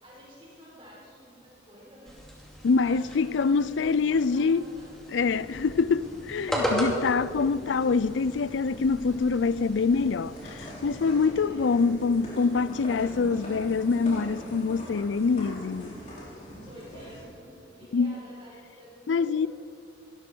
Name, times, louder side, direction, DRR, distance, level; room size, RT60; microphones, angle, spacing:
voice 1, 0.0-2.2 2.8-5.0 11.2-11.7 16.6-19.5, equal, 30° right, 4.4 m, -50 dB
sound 1, 2.1-11.3, equal, 5° left, 2.5 m, -36 dB
voice 2, 2.6-4.6 5.1-15.9 17.9-18.1 19.1-19.5, left 4 dB, 80° left, 0.4 m, -25 dB
sound 2, 5.0-17.2, equal, 40° left, 5.4 m, -43 dB
22.0 x 13.5 x 4.5 m
head